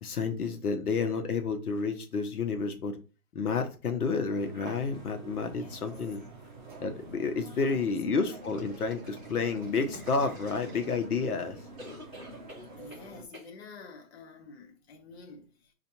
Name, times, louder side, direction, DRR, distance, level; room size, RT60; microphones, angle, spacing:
voice 1, 0.0-3.0 3.3-6.2 6.8-11.6, left 4 dB, 75° left, 0.9 m, -30 dB
sound 1, 4.3-13.2, right 2 dB, 35° right, 0.6 m, -47 dB
voice 2, 5.4-5.8 7.4-7.9 12.8-15.7, left 4 dB, 45° left, 0.9 m, -49 dB
sound 2, 8.4-11.3 11.8-13.1 13.3-13.5, equal, ahead, 0.9 m, -49 dB
6.5 x 2.5 x 2.8 m
hypercardioid pair, 160°, 45 cm